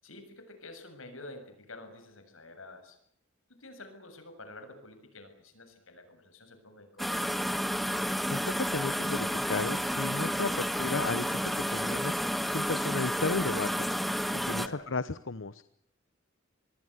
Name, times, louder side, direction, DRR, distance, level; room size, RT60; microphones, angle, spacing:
voice 1, 0.0-3.0 3.5-7.3 14.6-14.9, left 2 dB, 85° left, 8 dB, 7.3 m, -49 dB
sound 1, 7.0-14.7, equal, ahead, 1.4 m, -31 dB
voice 2, 8.3-13.9 14.3-15.6, left 3 dB, 65° left, 15 dB, 1.0 m, -34 dB
26.5 x 21.0 x 8.1 m, 0.68 s
head